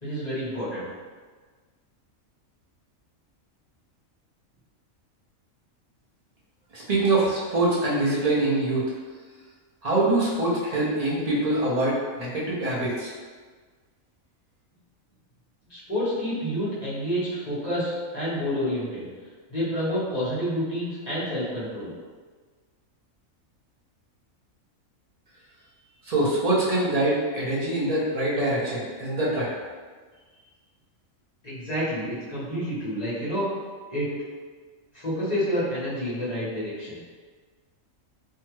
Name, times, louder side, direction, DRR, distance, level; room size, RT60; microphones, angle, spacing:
voice 1, 0.0-0.9 15.7-19.1 19.5-21.9 31.4-33.5 33.9-34.1 34.9-37.0, equal, 35° left, -11 dB, 1.0 m, -29 dB
voice 2, 6.7-8.9 9.8-13.1 26.0-29.5, right 2 dB, 45° right, -7 dB, 0.5 m, -24 dB
2.7 x 2.3 x 3.0 m, 1.5 s
omnidirectional pair, 1.4 m